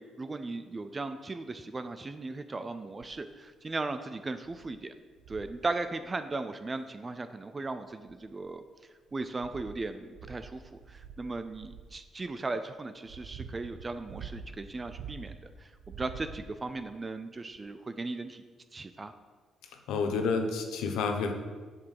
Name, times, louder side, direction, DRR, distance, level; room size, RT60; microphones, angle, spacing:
voice 1, 0.0-4.9 5.3-8.6 9.1-18.4 18.7-19.1, right 3 dB, 25° right, 9 dB, 0.5 m, -37 dB
sound 1, 3.0-3.3 3.9-4.0 4.5-4.7 5.2-5.6 7.0-7.1 7.9-8.6 9.1-12.0 12.7-15.4 15.8-16.7 17.5-17.6, right 6 dB, 85° right, 0.7 m, -46 dB
voice 2, 19.6-21.3, left 4 dB, 90° left, 5 dB, 1.0 m, -30 dB
7.4 x 6.2 x 6.4 m, 1.4 s
cardioid pair, 90°, 0 cm